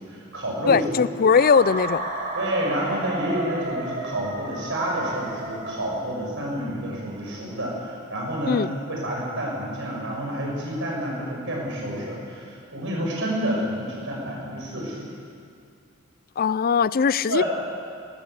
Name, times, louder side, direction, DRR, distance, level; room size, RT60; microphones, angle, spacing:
voice 1, 0.0-0.8 2.3-15.1 17.3-17.4, equal, 60° right, -2 dB, 6.7 m, -29 dB
voice 2, 0.7-2.0 8.5-8.7 16.4-17.4, left 6 dB, 45° left, 18 dB, 0.4 m, -20 dB
sound 1, 1.3-6.2, right 2 dB, 40° right, 2.8 m, -32 dB
19.5 x 18.0 x 8.3 m, 2.4 s
head